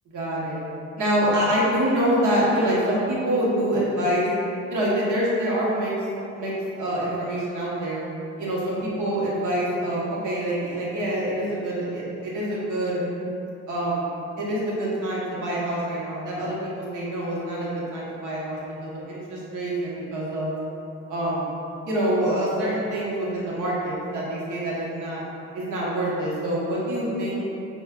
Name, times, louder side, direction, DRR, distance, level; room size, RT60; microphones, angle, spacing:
voice 1, 0.1-0.6 1.0-4.3 4.7-5.9 6.3-8.0 8.4-13.0 13.7-20.6 21.1-21.5 21.8-25.2 25.5-27.4, right 1 dB, 80° right, -6 dB, 1.1 m, -26 dB
5.5 x 2.5 x 2.4 m, 2.8 s
cardioid pair, 90°, 30 cm